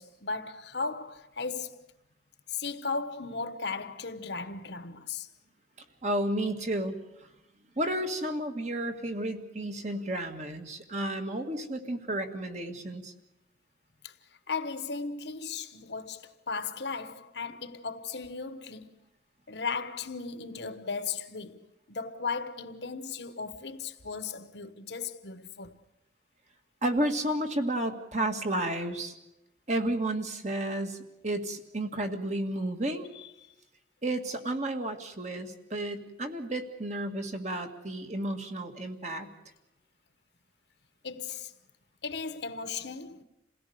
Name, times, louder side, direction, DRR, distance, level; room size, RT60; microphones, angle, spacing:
voice 1, 0.0-1.9 2.5-5.3 14.0-14.1 14.5-18.9 19.5-25.8 33.1-33.3 41.0-41.5 42.0-43.2, left 4 dB, 65° left, 1.2 m, -36 dB
voice 2, 6.0-7.0 7.8-13.1 26.8-29.1 29.7-31.0 31.2-33.1 34.0-39.3, right 1 dB, 40° right, 1.9 m, -32 dB
28.0 x 17.5 x 6.9 m
head